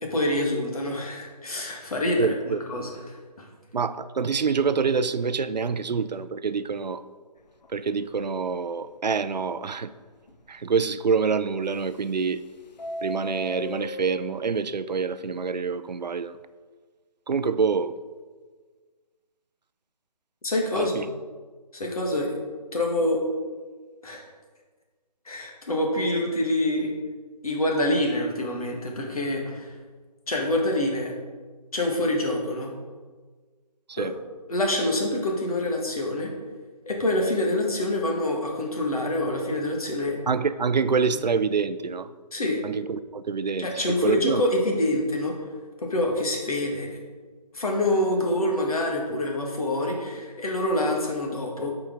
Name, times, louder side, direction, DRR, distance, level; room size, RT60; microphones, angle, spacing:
voice 1, 0.0-3.5 20.4-21.0 21.7-22.4 22.7-23.2 24.0-24.2 25.2-26.9 27.4-29.7 30.3-31.1 31.7-32.7 34.0-34.1 34.5-36.3 36.9-40.2 41.1-41.2 42.3-42.6 43.6-45.3 45.8-47.0 47.5-51.7, left 1 dB, 60° left, 0 dB, 1.7 m, -26 dB
voice 2, 2.2-2.6 3.7-7.0 7.7-9.9 10.5-12.4 13.0-16.4 17.3-17.9 20.8-21.1 33.9-34.1 40.3-42.1 42.6-44.4, right 5 dB, 90° right, 13 dB, 0.5 m, -26 dB
Subway metro underground, 7.4-7.7 8.1-8.2 8.5-8.6 9.1-9.2 11.7-12.4 12.7-14.4, equal, 90° left, 0.6 m, -36 dB
8.5 x 4.9 x 3.7 m, 1.5 s
figure-of-eight pair, 165°, 21 cm